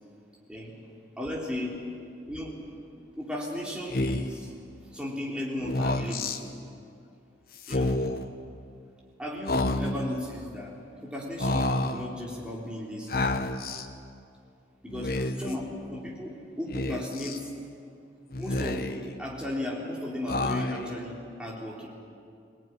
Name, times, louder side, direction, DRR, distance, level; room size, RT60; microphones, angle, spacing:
voice 1, 1.2-1.8 2.3-2.6 3.1-4.5 4.9-6.5 7.7-8.0 9.2-10.7 11.0-13.2 14.8-15.1 15.4-15.6 15.9-17.5 18.4-21.9, left 1 dB, 5° right, -3 dB, 3.7 m, -35 dB
Speech, 3.9-4.4 5.6-6.4 7.6-8.2 9.5-10.2 11.4-12.1 13.1-13.9 14.9-15.5 16.7-17.4 18.3-19.1 20.3-21.0, left 2 dB, 50° left, 1.1 m, -29 dB
21.0 x 18.0 x 9.9 m, 2.4 s
head